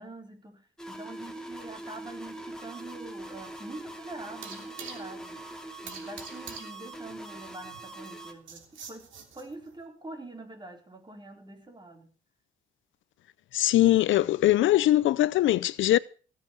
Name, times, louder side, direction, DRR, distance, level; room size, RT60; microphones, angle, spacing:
voice 1, 0.0-5.6 5.8-9.1 9.3-12.1, right 2 dB, 20° right, 4.2 m, -45 dB
sound 1, 0.8-8.3, right 1 dB, 5° left, 2.7 m, -42 dB
sound 2, 1.9-9.8, right 6 dB, 70° right, 3.4 m, -48 dB
voice 2, 13.5-16.0, left 14 dB, 75° left, 0.6 m, -22 dB
17.0 x 7.7 x 6.7 m
cardioid pair, 90°, 20 cm